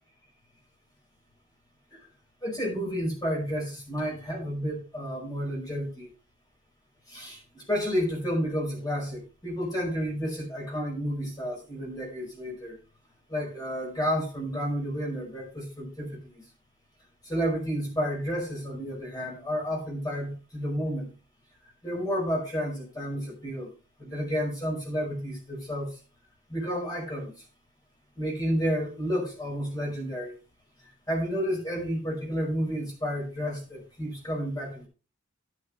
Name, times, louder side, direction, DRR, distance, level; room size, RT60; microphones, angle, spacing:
voice 1, 2.4-6.1 7.1-12.8 13.3-16.4 17.2-21.1 21.8-23.7 24.0-26.0 26.5-27.3 28.2-30.3 31.1-34.9, equal, 20° left, -1 dB, 5.4 m, -31 dB
11.0 x 10.5 x 3.2 m, 0.33 s
head